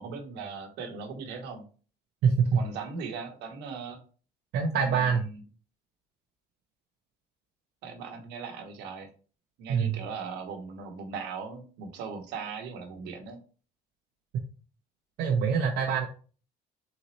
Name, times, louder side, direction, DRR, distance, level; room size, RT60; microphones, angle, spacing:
voice 1, 0.0-1.6 2.5-4.0 4.8-5.4 7.8-9.1 9.6-13.4, right 5 dB, 90° right, 4 dB, 1.2 m, -39 dB
voice 2, 2.2-2.6 4.5-5.2 9.7-10.0 15.2-16.1, right 6 dB, 75° right, 0 dB, 0.8 m, -25 dB
4.0 x 3.8 x 3.1 m, 0.37 s
cardioid pair, 110°, 17 cm